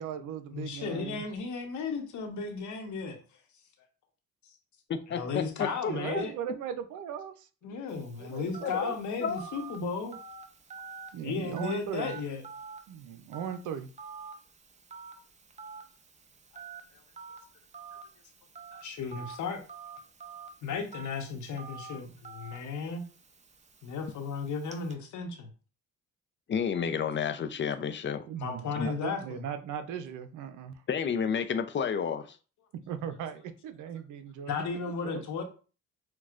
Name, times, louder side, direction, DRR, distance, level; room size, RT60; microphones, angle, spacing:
voice 1, 0.0-1.3 5.9-7.8 8.2-9.0 11.1-12.1 12.9-13.9 28.3-30.8 32.9-34.6 35.0-35.2, right 8 dB, 80° right, 0.6 m, -38 dB
voice 2, 0.5-3.2 5.1-6.3 7.6-10.2 11.2-12.4 16.5-16.6 18.7-19.6 20.6-23.0 23.8-25.5 28.4-29.4 34.5-35.4, left 5 dB, 70° left, 1.0 m, -35 dB
voice 3, 4.9-5.9 8.6-8.9 9.2-9.4 26.5-28.3 28.8-28.9 30.9-32.3, left 7 dB, 40° left, 0.5 m, -31 dB
Telephone, 7.9-24.9, right 5 dB, 25° right, 0.6 m, -48 dB
6.1 x 2.3 x 2.5 m
cardioid pair, 90°, 30 cm